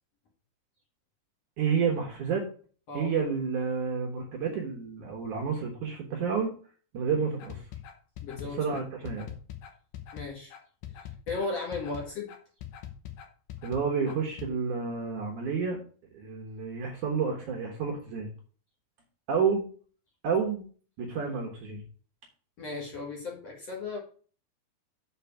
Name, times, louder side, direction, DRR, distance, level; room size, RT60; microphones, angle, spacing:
voice 1, 1.6-2.5 2.9-6.5 6.9-7.6 8.4-9.3 13.6-15.8 16.1-18.3 19.3-19.6 20.2-20.6 21.0-21.8, right 6 dB, 60° right, 1 dB, 2.4 m, -30 dB
sound 1, 7.4-14.5, left 11 dB, 65° left, 2.3 m, -42 dB
voice 2, 8.2-8.9 10.1-10.5 11.3-12.3 22.6-24.0, left 3 dB, 50° left, -2 dB, 2.3 m, -36 dB
6.9 x 5.0 x 7.0 m, 0.41 s
omnidirectional pair, 4.6 m